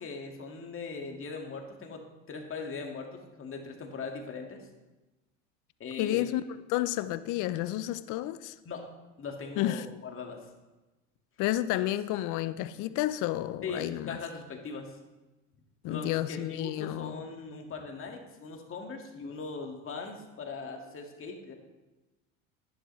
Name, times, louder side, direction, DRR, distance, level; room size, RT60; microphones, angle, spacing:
voice 1, 0.0-4.7 5.8-6.3 8.7-8.9 9.2-10.5 11.8-11.9 13.6-15.0 15.9-21.5, left 4 dB, 35° left, 2 dB, 2.1 m, -40 dB
voice 2, 6.0-6.4 6.7-8.6 9.6-9.9 11.4-14.2 15.8-17.2, left 14 dB, 55° left, 14 dB, 0.7 m, -31 dB
10.5 x 10.5 x 3.2 m, 1.1 s
hypercardioid pair, 80°, 38 cm